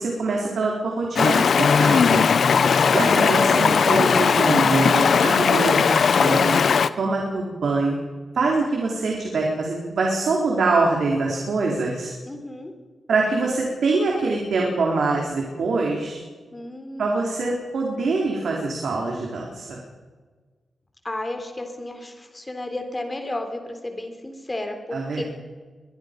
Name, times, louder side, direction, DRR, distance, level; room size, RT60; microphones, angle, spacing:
voice 1, 0.0-2.3 2.9-6.6 7.0-8.0 8.3-12.1 13.1-16.2 17.0-19.8 24.9-25.2, right 3 dB, 75° right, -1 dB, 3.9 m, -24 dB
Stream, 1.1-6.9, left 6 dB, 65° left, 0.8 m, -18 dB
voice 2, 12.3-12.7 16.5-17.2 21.0-25.2, left 1 dB, 20° left, 5 dB, 3.4 m, -33 dB
23.0 x 21.5 x 5.3 m, 1.4 s
wide cardioid pair, 140°, 0 cm